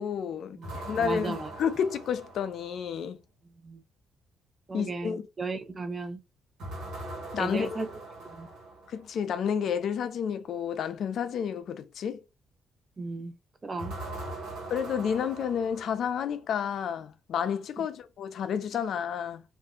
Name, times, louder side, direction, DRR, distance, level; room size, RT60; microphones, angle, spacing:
voice 1, 0.0-3.2 4.7-5.2 7.3-7.9 8.9-12.2 14.7-19.4, left 7 dB, 65° left, 0.4 m, -30 dB
voice 2, 0.6-1.5 3.6-3.8 4.7-6.2 7.4-7.9 8.2-8.5 13.0-13.3 13.6-13.9 17.8-17.9, right 3 dB, 30° right, 0.7 m, -35 dB
sound 1, 0.6-3.0 6.6-9.1 13.8-16.4, right 1 dB, 85° right, 1.4 m, -41 dB
2.6 x 2.2 x 3.6 m
cardioid pair, 90°, 0 cm